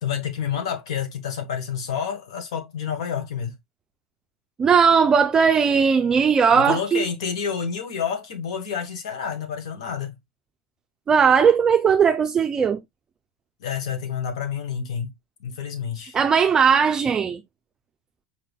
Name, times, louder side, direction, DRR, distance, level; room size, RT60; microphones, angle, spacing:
voice 1, 0.0-3.6 6.5-10.2 13.6-15.1 15.4-16.2, left 7 dB, 85° left, 1.4 m, -29 dB
voice 2, 4.6-7.0 11.1-12.8 16.1-17.4, right 6 dB, 25° right, 0.5 m, -18 dB
4.8 x 3.7 x 2.3 m
supercardioid pair, 120°, 3 cm